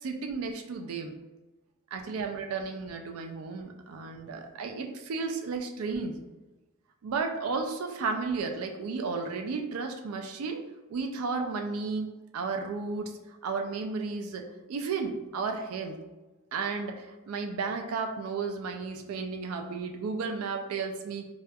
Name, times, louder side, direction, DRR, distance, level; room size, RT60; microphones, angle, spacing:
voice 1, 0.0-1.1 1.9-6.1 7.0-10.6 10.9-12.1 12.3-16.0 16.5-21.3, right 4 dB, 90° right, 4 dB, 0.4 m, -33 dB
4.1 x 2.3 x 2.2 m, 1.1 s
head